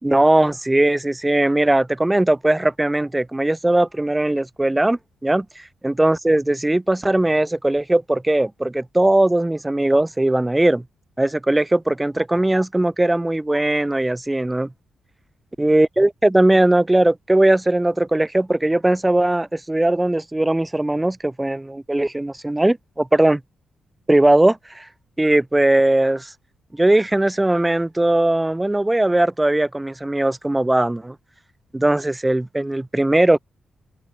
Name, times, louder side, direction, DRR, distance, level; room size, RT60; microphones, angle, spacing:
voice 1, 0.0-5.5 5.8-10.8 11.2-14.7 15.6-23.4 24.1-24.9 25.2-26.3 26.7-31.2 31.7-33.4, right 1 dB, 10° right, 5.3 m, -19 dB
open air
wide cardioid pair, 175°, 0 cm